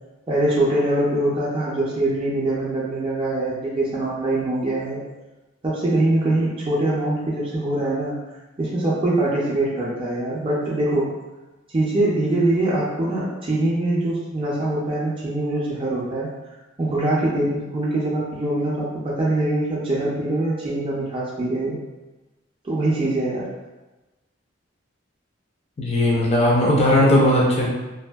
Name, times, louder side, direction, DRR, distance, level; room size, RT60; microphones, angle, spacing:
voice 1, 0.3-5.0 5.6-8.2 8.6-11.1 11.7-16.3 16.8-21.8 22.6-23.5, right 1 dB, 30° right, -6 dB, 0.4 m, -23 dB
voice 2, 25.8-27.7, left 1 dB, 35° left, -4 dB, 0.5 m, -17 dB
2.6 x 2.5 x 2.2 m, 1.1 s
head